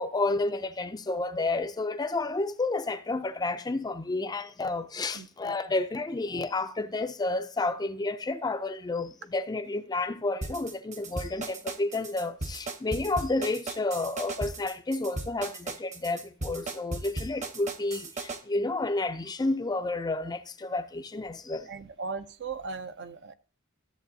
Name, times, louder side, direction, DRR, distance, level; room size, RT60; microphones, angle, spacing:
voice 1, 0.0-21.7, left 2 dB, 20° left, 0.4 m, -31 dB
voice 2, 5.1-5.6 21.7-23.3, right 4 dB, 50° right, 0.6 m, -38 dB
sound 1, 10.4-18.4, right 2 dB, 35° right, 1.0 m, -36 dB
13.5 x 7.6 x 2.7 m
head